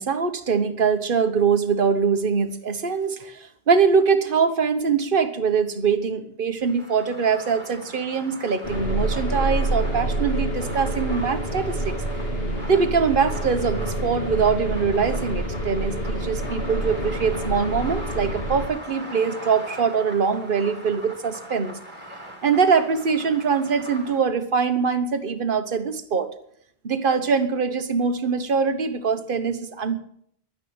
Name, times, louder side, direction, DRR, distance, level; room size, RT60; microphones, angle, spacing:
voice 1, 0.0-11.9 12.7-21.8 22.4-26.3 26.8-30.0, right 5 dB, 55° right, 9 dB, 1.3 m, -23 dB
sound 1, 6.6-24.2, equal, 10° right, 2.8 m, -40 dB
sound 2, 8.6-18.7, right 1 dB, 65° left, 2.3 m, -27 dB
11.5 x 9.7 x 8.7 m, 0.68 s
omnidirectional pair, 1.1 m